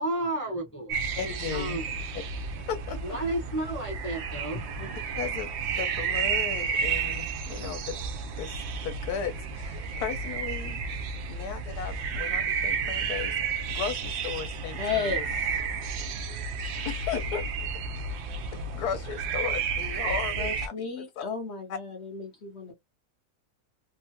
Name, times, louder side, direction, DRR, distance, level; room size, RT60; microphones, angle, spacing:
voice 1, 0.0-1.0 1.5-2.0 3.0-4.9, right 1 dB, 10° left, 0.9 m, -32 dB
sound 1, 0.9-20.7, right 5 dB, 70° right, 0.6 m, -32 dB
voice 2, 1.2-1.8 2.1-2.2 2.7-3.2 4.9-8.0 8.4-13.4 13.7-15.2 16.8-17.4 18.7-21.2 21.7-21.8, left 7 dB, 85° left, 1.3 m, -36 dB
voice 3, 14.8-15.6 20.0-22.7, left 5 dB, 55° left, 0.9 m, -34 dB
3.5 x 2.1 x 2.7 m
omnidirectional pair, 1.6 m